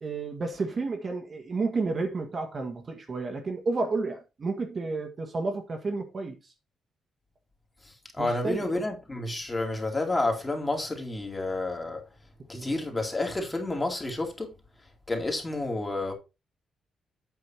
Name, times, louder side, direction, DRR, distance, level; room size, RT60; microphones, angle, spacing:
voice 1, 0.0-6.4 8.2-8.8 12.5-12.7, right 3 dB, 35° right, 1.8 m, -31 dB
voice 2, 8.1-12.0 12.5-14.5 15.1-16.1, left 2 dB, 15° left, 2.7 m, -30 dB
8.4 x 5.7 x 4.4 m
cardioid pair, 120°, 0 cm